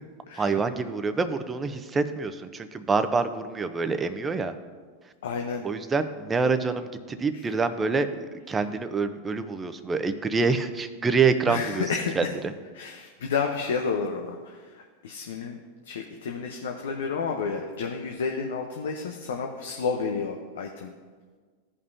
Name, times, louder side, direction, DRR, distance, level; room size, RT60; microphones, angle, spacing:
voice 1, 0.4-4.5 5.6-11.9 12.2-12.5, right 4 dB, 20° right, 10 dB, 0.7 m, -26 dB
voice 2, 5.2-5.7 11.5-12.3 12.7-15.6 15.8-20.9, left 5 dB, 75° left, 3 dB, 0.7 m, -31 dB
15.5 x 5.5 x 2.7 m, 1.5 s
hypercardioid pair, 100°, 0 cm